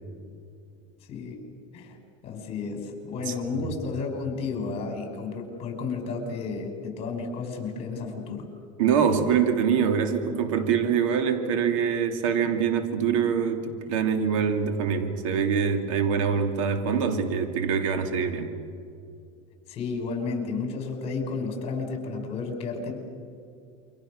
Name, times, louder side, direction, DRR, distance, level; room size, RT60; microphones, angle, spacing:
voice 1, 2.2-8.5 19.7-22.9, left 4 dB, 40° left, 4 dB, 5.5 m, -32 dB
voice 2, 8.8-18.5, right 7 dB, 85° right, 6 dB, 2.8 m, -24 dB
28.0 x 24.5 x 6.6 m, 2.3 s
supercardioid pair, 135°, 16 cm